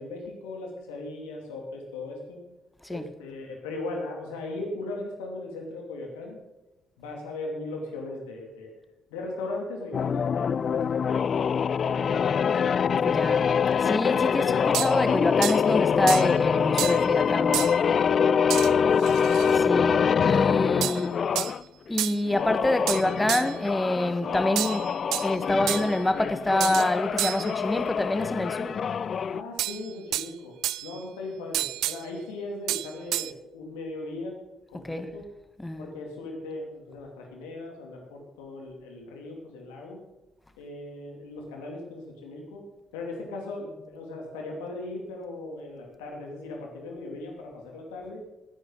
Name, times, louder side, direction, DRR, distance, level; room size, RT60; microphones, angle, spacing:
voice 1, 0.0-2.4 2.9-6.4 7.0-8.7 9.1-11.3 11.8-12.6 29.3-30.5 30.8-34.3 34.7-35.2 35.8-40.0 40.6-42.7 42.9-48.2, left 2 dB, 75° left, 2.7 m, -38 dB
sound 1, 9.9-21.6 22.3-29.4, left 7 dB, 50° left, 0.3 m, -25 dB
voice 2, 13.0-13.5 13.8-17.8 19.5-21.2 21.9-24.9 25.2-28.7 34.7-35.1 35.6-35.9, left 1 dB, 15° left, 1.5 m, -27 dB
sound 2, 14.7-15.0 15.4-15.6 16.1-16.3 16.8-17.1 17.5-17.8 18.5-18.7 19.0-19.6 20.8-21.1 21.4-21.5 22.0-22.2 22.9-23.6 24.6-25.3 25.7-26.0 26.6-26.9 27.2-27.5 29.6-30.3 30.6-31.0 31.5-32.0 32.7-33.3, right 14 dB, 65° right, 0.3 m, -30 dB
20.0 x 9.9 x 3.9 m
figure-of-eight pair, 45°, 0 cm